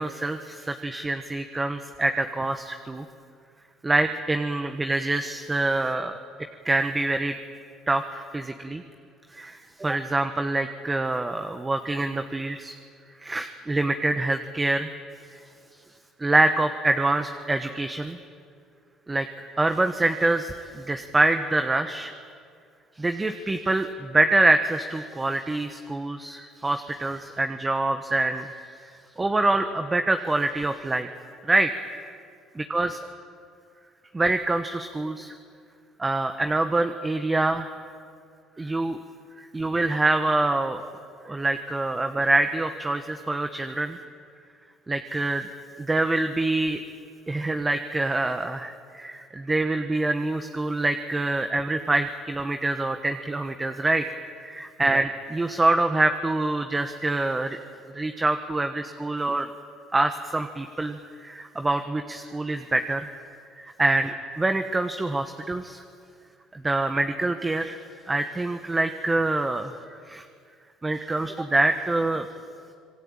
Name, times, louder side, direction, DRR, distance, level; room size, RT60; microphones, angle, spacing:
voice 1, 0.0-3.0 3.8-6.2 6.6-7.3 7.9-8.8 9.3-12.7 13.2-14.9 16.2-18.2 19.1-22.1 23.0-28.5 28.8-28.9 29.2-31.1 31.4-31.9 32.5-33.0 34.1-35.3 36.0-37.7 38.6-39.0 39.4-40.8 41.2-44.0 44.9-45.5 45.8-46.8 47.3-54.0 54.4-57.6 57.9-59.5 59.9-63.1 63.6-65.8 66.5-67.8 68.1-70.2 70.8-72.3, right 2 dB, 15° right, 7 dB, 1.2 m, -25 dB
26.5 x 21.0 x 8.9 m, 2.3 s
cardioid pair, 100°, 0 cm